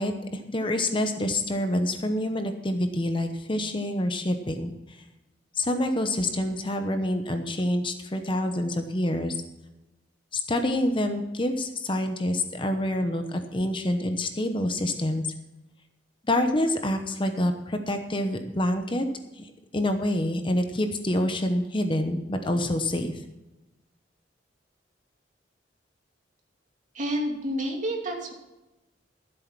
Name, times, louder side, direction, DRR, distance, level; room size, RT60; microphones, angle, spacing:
voice 1, 0.0-4.7 5.6-9.4 10.3-15.2 16.3-19.1 19.4-23.1, left 1 dB, 30° left, 7 dB, 0.9 m, -27 dB
voice 2, 26.9-28.3, equal, 45° right, 1 dB, 2.6 m, -29 dB
13.5 x 8.0 x 6.0 m, 1.0 s
head